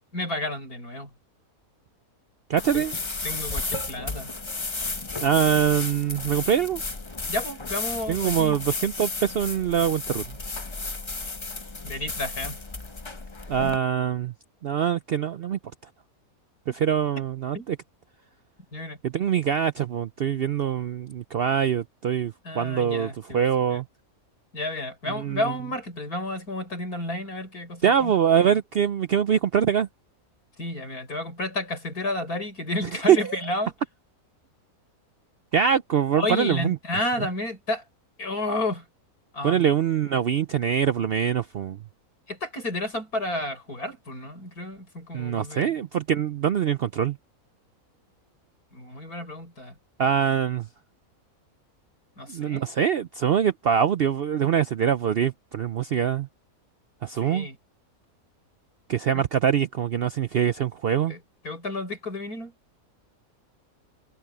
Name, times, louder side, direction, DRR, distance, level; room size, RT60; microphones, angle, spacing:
voice 1, 0.1-1.1 2.7-2.8 3.2-4.3 7.3-8.6 11.8-12.6 17.5-17.7 18.7-19.0 22.4-23.4 23.7-23.8 24.5-28.6 30.6-33.7 36.2-37.8 38.2-38.9 39.3-39.7 42.3-45.8 48.7-49.7 52.2-52.7 57.2-57.6 61.1-61.2 61.4-62.5, left 1 dB, 85° left, 7.2 m, -31 dB
voice 2, 2.5-2.9 5.2-6.8 8.1-10.4 13.5-14.3 14.6-15.6 16.7-17.8 19.0-23.8 25.1-25.4 27.8-29.9 33.1-33.4 35.5-36.8 39.4-41.8 45.1-47.2 50.0-50.7 52.3-56.3 57.0-57.5 58.9-61.1, right 8 dB, 65° right, 0.6 m, -24 dB
sound 1, 2.6-13.8, left 3 dB, 25° left, 0.9 m, -33 dB
omnidirectional pair, 1.6 m